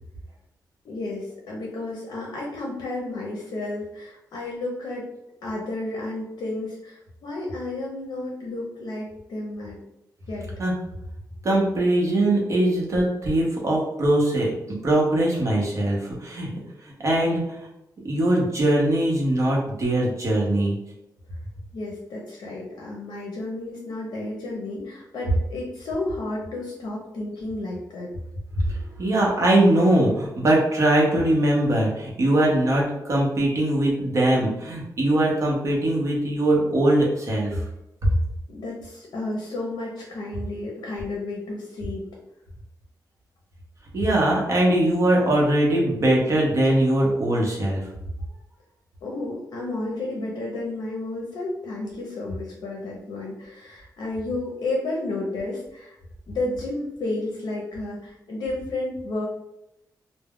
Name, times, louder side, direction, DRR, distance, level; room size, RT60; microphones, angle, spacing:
voice 1, 0.8-5.1 5.4-9.8 10.3-10.5 21.7-28.1 38.5-42.0 49.0-56.0 56.3-59.3, left 2 dB, 75° left, -2 dB, 0.6 m, -32 dB
voice 2, 11.4-16.5 17.0-17.6 18.0-20.8 28.6-37.6 43.9-47.9, right 1 dB, 45° right, -3 dB, 0.7 m, -21 dB
2.3 x 2.0 x 3.4 m, 0.86 s
wide cardioid pair, 170°, 7 cm